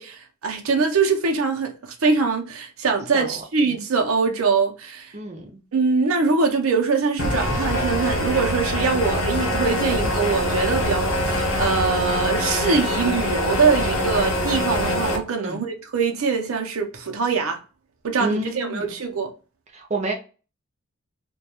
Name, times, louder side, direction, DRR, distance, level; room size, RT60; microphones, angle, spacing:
voice 1, 0.0-5.1 5.7-17.6 18.0-19.3, right 4 dB, 85° right, 0.6 m, -23 dB
voice 2, 3.1-3.8 5.1-5.5 15.4-15.6 18.2-18.9 19.7-20.1, right 2 dB, 30° right, 0.5 m, -29 dB
sound 1, 7.2-15.2, left 1 dB, 70° left, 0.7 m, -24 dB
2.3 x 2.2 x 2.8 m
head